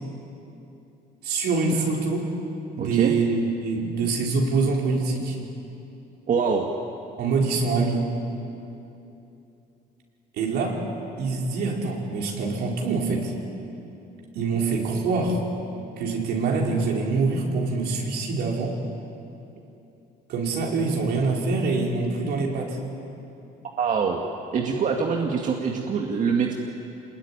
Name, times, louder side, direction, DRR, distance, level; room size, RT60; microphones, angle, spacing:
voice 1, 1.2-2.2 2.8-5.4 7.2-8.1 10.3-10.8 11.2-13.3 14.3-15.4 16.0-18.7 20.3-22.8, right 4 dB, 75° right, -1 dB, 5.1 m, -25 dB
voice 2, 2.8-3.1 6.3-6.7 23.8-24.2 24.5-26.5, right 6 dB, 50° right, 1 dB, 2.1 m, -24 dB
26.0 x 21.0 x 10.0 m, 2.9 s
cardioid pair, 110°, 17 cm